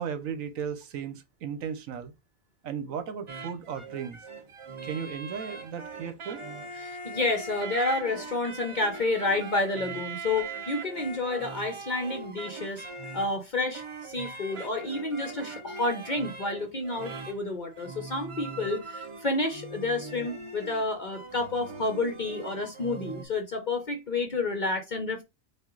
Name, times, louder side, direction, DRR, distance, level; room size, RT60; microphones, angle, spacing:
voice 1, 0.0-2.1 2.6-4.2 4.8-6.4, right 7 dB, 75° right, 1.1 m, -35 dB
sound 1, 3.3-23.3, right 3 dB, 35° right, 0.5 m, -41 dB
voice 2, 6.8-12.9 13.1-25.2, left 2 dB, 45° left, 0.6 m, -30 dB
5.7 x 2.4 x 3.8 m
omnidirectional pair, 1.5 m